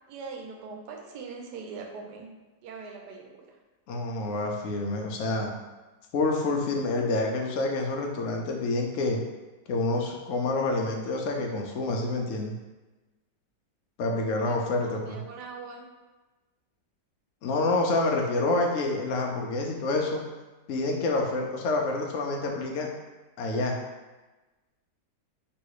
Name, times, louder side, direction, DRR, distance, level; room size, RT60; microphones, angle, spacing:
voice 1, 0.1-2.3 2.6-3.5 14.5-15.8, right 4 dB, 70° right, 2 dB, 1.2 m, -41 dB
voice 2, 3.9-5.5 6.1-9.2 9.7-12.5 14.0-15.2 17.4-20.2 20.7-22.9 23.4-23.8, left 2 dB, 65° left, 1 dB, 0.7 m, -27 dB
3.1 x 3.0 x 4.7 m, 1.2 s
omnidirectional pair, 1.9 m